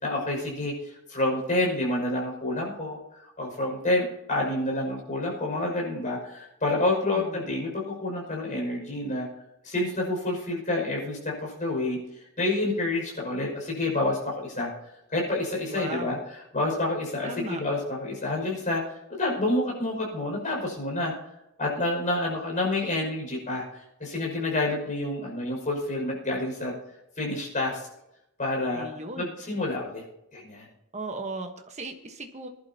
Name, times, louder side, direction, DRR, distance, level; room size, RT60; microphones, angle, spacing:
voice 1, 0.0-9.3 9.6-12.0 12.4-14.7 15.1-16.2 16.5-18.8 19.1-21.1 21.6-26.7 27.2-27.9 28.4-28.9 29.2-30.0 30.3-30.7, left 2 dB, 35° left, -1 dB, 5.9 m, -28 dB
voice 2, 7.1-7.5 15.6-16.2 17.2-17.6 28.7-29.3 30.9-32.5, right 2 dB, 30° right, 5 dB, 1.2 m, -37 dB
21.5 x 11.0 x 2.9 m, 0.86 s
head